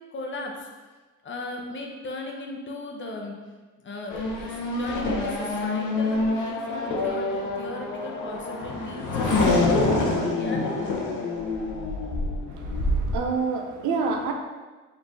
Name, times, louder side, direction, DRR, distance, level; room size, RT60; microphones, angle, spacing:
voice 1, 0.1-0.7 1.2-3.3 3.8-9.3 10.0-11.0, left 2 dB, 40° left, 0 dB, 0.7 m, -37 dB
Race car auto racing / Accelerating revving vroom, 4.1-13.2, left 2 dB, 80° left, 0.8 m, -26 dB
voice 2, 12.5-14.3, right 4 dB, 75° right, 3 dB, 0.6 m, -28 dB
5.1 x 3.3 x 2.7 m, 1.3 s
cardioid pair, 90°, 30 cm